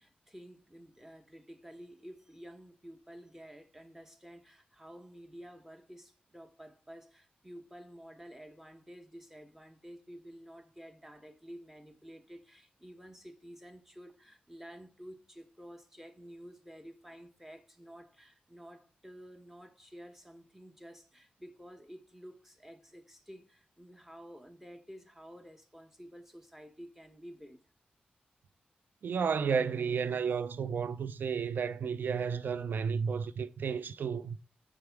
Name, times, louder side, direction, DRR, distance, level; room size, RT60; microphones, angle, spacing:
voice 1, 0.0-27.6, equal, 10° right, 1.1 m, -51 dB
voice 2, 29.0-34.4, right 6 dB, 70° right, 0.3 m, -32 dB
5.9 x 3.4 x 4.6 m
cardioid pair, 55°, 3 cm